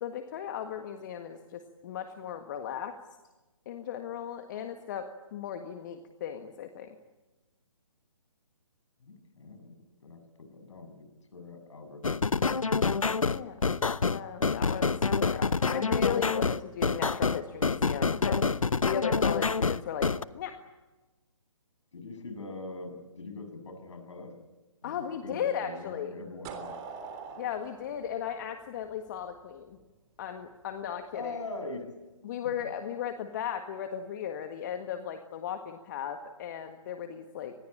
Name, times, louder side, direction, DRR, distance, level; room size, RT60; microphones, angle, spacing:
voice 1, 0.0-3.0 3.7-7.0 13.1-13.6 14.1-18.5 18.9-20.5 24.8-26.2 27.4-29.8 30.2-31.4 32.2-37.5, left 9 dB, 35° left, 6 dB, 1.7 m, -36 dB
voice 2, 9.0-11.0 11.3-12.7 21.9-24.3 24.8-26.7 31.1-31.9 32.4-32.5, left 3 dB, 65° left, 7 dB, 7.7 m, -43 dB
sound 1, 12.0-20.2, left 4 dB, 80° left, 1.0 m, -27 dB
sound 2, 26.4-29.3, right 5 dB, 20° right, 3.5 m, -43 dB
25.5 x 20.5 x 8.8 m, 1.1 s
figure-of-eight pair, 145°, 17 cm